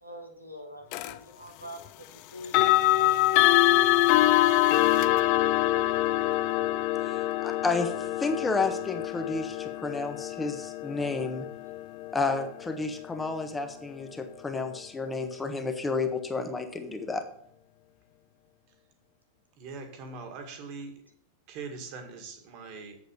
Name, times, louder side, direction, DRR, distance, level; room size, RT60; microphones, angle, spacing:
voice 1, 0.0-2.6 2.9-3.8, equal, 90° left, 3 dB, 1.5 m, -45 dB
sound 1, 0.9-1.1 2.4-13.3, left 16 dB, 45° left, 0.4 m, -25 dB
voice 2, 7.0-7.9 8.2-11.5 12.1-17.2, left 3 dB, 15° left, 7 dB, 1.3 m, -31 dB
voice 3, 19.6-21.0 21.5-23.0, right 4 dB, 40° right, 5 dB, 1.9 m, -41 dB
7.9 x 7.4 x 5.3 m, 0.67 s
figure-of-eight pair, 90°, 0 cm